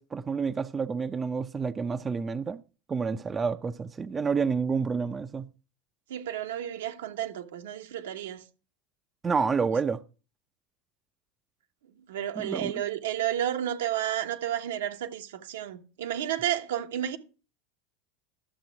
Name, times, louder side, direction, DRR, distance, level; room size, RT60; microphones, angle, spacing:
voice 1, 0.0-2.6 2.9-5.5 9.2-10.0 12.4-12.7, right 5 dB, 20° right, 0.5 m, -29 dB
voice 2, 6.1-8.4 9.7-9.8 12.1-17.2, right 11 dB, 90° right, 1.2 m, -31 dB
12.0 x 7.0 x 4.7 m
supercardioid pair, 120°, 0 cm